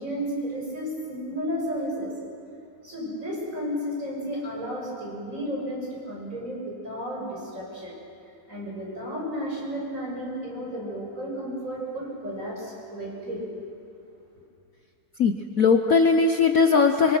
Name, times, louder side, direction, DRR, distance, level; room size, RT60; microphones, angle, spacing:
voice 1, 0.0-2.1 2.8-7.9 8.5-13.4, equal, 35° right, -3 dB, 7.0 m, -33 dB
voice 2, 15.2-17.2, left 5 dB, 55° left, 5 dB, 1.1 m, -19 dB
25.0 x 25.0 x 6.2 m, 2.5 s
omnidirectional pair, 2.3 m